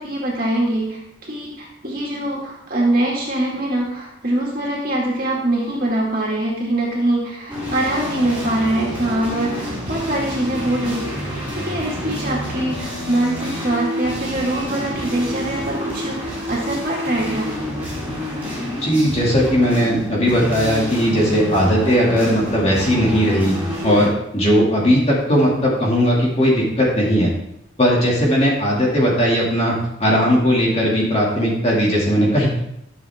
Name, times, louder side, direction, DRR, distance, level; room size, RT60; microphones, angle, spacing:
voice 1, 0.0-17.5, right 1 dB, 45° right, -3 dB, 2.3 m, -23 dB
sound 1, 7.5-24.1, equal, 10° right, 3.7 m, -28 dB
voice 2, 18.8-23.6 23.8-27.3 27.8-32.5, equal, 30° left, -4 dB, 2.4 m, -18 dB
13.0 x 7.3 x 3.6 m, 0.78 s
head